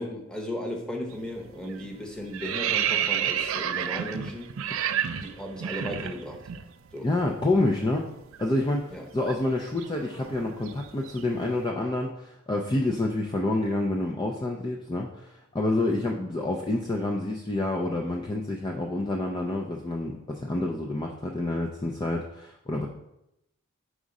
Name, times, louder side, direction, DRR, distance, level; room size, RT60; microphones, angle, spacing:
voice 1, 0.0-4.5 5.2-6.4 6.9-7.1 8.9-9.0, left 1 dB, 5° left, 0 dB, 0.9 m, -36 dB
sound 1, 1.1-1.4 1.7-6.6 6.9-7.1 7.4-11.5, right 9 dB, 65° right, 0.4 m, -31 dB
voice 2, 7.0-8.1 8.4-22.9, left 2 dB, 20° left, 0 dB, 0.4 m, -28 dB
4.9 x 3.7 x 5.3 m, 0.84 s
head